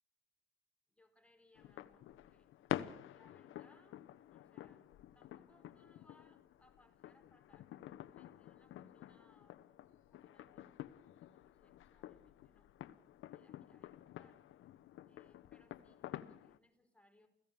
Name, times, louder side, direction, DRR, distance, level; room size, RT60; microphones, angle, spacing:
voice 1, 0.9-7.7 8.1-9.6 10.1-12.7 13.3-14.4 15.1-17.3, left 1 dB, 5° left, 5 dB, 4.5 m, -71 dB
sound 1, 1.5-16.6, left 13 dB, 80° left, 1.1 m, -49 dB
29.0 x 17.0 x 7.0 m, 0.71 s
cardioid pair, 90°, 20 cm